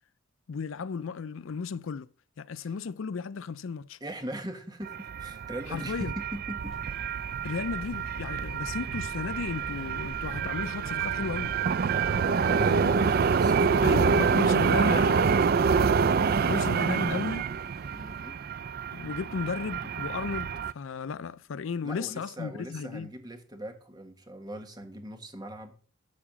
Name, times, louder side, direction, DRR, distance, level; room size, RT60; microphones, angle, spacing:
voice 1, 0.5-2.1 2.4-4.0 5.7-6.1 7.4-11.6 12.7-13.1 13.8-15.2 16.5-17.5 18.9-23.1, left 5 dB, 80° left, 0.5 m, -35 dB
voice 2, 4.0-6.8 12.2-15.2 16.1-16.5 17.9-18.4 21.8-25.7, right 1 dB, 20° right, 1.5 m, -40 dB
sound 1, 4.8-20.7, right 5 dB, 50° right, 0.4 m, -27 dB
sound 2, 6.6-18.2, equal, ahead, 2.7 m, -47 dB
12.0 x 4.9 x 7.4 m
head